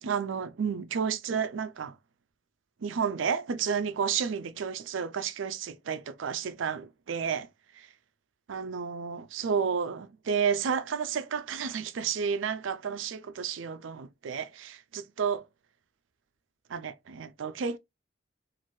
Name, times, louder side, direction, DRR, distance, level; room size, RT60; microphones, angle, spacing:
voice 1, 0.0-1.9 2.8-7.5 7.8-7.9 8.5-15.4 16.7-17.8, right 6 dB, 85° right, 0.4 m, -31 dB
3.0 x 2.5 x 2.6 m
head